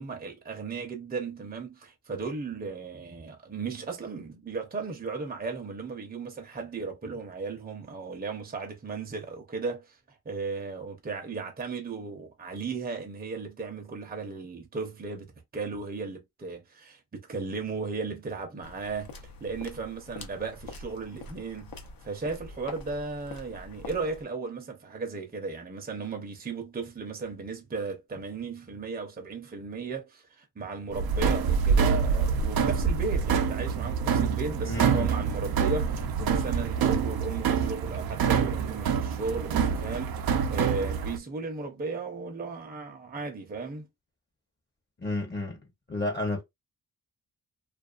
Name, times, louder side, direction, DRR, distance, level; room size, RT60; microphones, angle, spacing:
voice 1, 0.0-10.0 10.2-43.9, right 4 dB, 25° right, 0.6 m, -36 dB
sound 1, 18.6-24.2, left 3 dB, 65° left, 0.7 m, -45 dB
sound 2, 30.9-41.2, right 6 dB, 75° right, 0.5 m, -26 dB
voice 2, 34.6-35.1 45.0-45.6 45.9-46.4, left 2 dB, 30° left, 0.8 m, -31 dB
2.4 x 2.3 x 2.4 m
cardioid pair, 90°, 37 cm